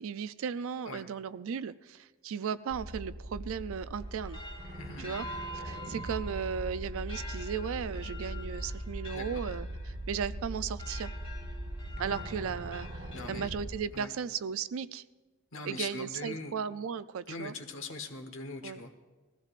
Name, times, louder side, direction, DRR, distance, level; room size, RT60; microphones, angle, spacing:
voice 1, 0.0-4.4 5.0-5.2 5.5-11.1 12.0-15.0 15.6-17.5 18.6-18.8, right 7 dB, 65° right, 15 dB, 0.4 m, -36 dB
sound 1, 2.7-13.7, right 1 dB, 40° right, 0.9 m, -40 dB
sound 2, 4.0-13.9, left 1 dB, 25° left, 1.3 m, -47 dB
voice 2, 4.8-5.1 9.1-9.4 13.1-13.5 13.9-14.1 15.5-16.5 17.3-18.9, left 3 dB, 65° left, 7 dB, 1.1 m, -41 dB
20.0 x 15.0 x 2.5 m, 1.2 s
head